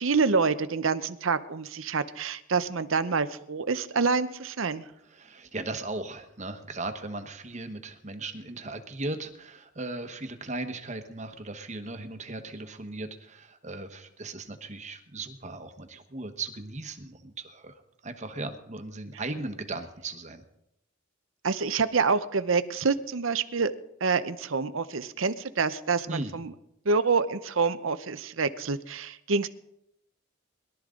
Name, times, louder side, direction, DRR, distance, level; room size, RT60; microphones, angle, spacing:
voice 1, 0.0-4.8 21.4-23.7 24.0-26.5 26.8-29.5, right 4 dB, 80° right, 12 dB, 0.8 m, -27 dB
voice 2, 5.0-20.4 26.1-26.4, right 2 dB, 35° right, 8 dB, 1.2 m, -37 dB
22.0 x 12.5 x 3.8 m, 0.79 s
head